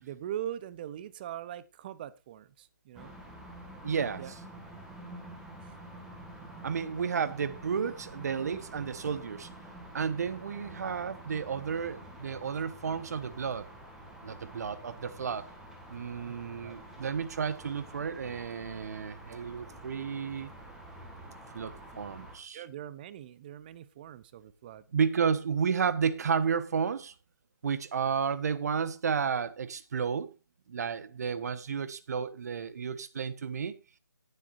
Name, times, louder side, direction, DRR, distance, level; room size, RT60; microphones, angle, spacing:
voice 1, 0.0-3.1 4.2-4.3 5.6-5.8 12.5-12.6 16.2-16.4 16.6-16.7 22.5-24.9, right 11 dB, 25° right, 0.8 m, -41 dB
sound 1, 2.9-22.4, right 1 dB, 5° right, 2.1 m, -48 dB
voice 2, 3.8-4.2 6.6-9.5 9.9-13.7 14.2-15.5 15.9-20.5 21.5-22.6 24.9-27.1 27.6-30.3 30.7-33.8, right 6 dB, 50° right, 1.3 m, -32 dB
19.0 x 7.6 x 2.7 m
figure-of-eight pair, 155°, 11 cm